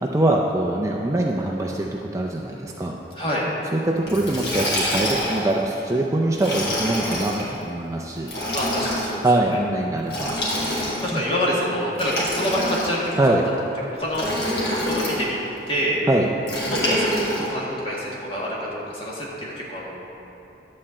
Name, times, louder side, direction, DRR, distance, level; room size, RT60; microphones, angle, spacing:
voice 1, 0.0-2.9 3.7-8.3 9.2-10.3 11.1-11.2 13.2-13.4 16.1-16.3, right 1 dB, 15° right, -1 dB, 0.4 m, -23 dB
Liquid, 4.1-5.5 6.3-7.4 8.2-9.1 10.1-11.2 11.9-13.1 14.1-15.2 16.5-17.5, equal, 60° left, 2.4 m, -26 dB
voice 2, 8.5-9.3 10.6-13.4 13.8-14.3 14.8-15.4 15.7-16.0 16.6-17.1 17.4-20.0, equal, 30° left, -5 dB, 1.7 m, -27 dB
11.0 x 4.3 x 7.6 m, 3.0 s
head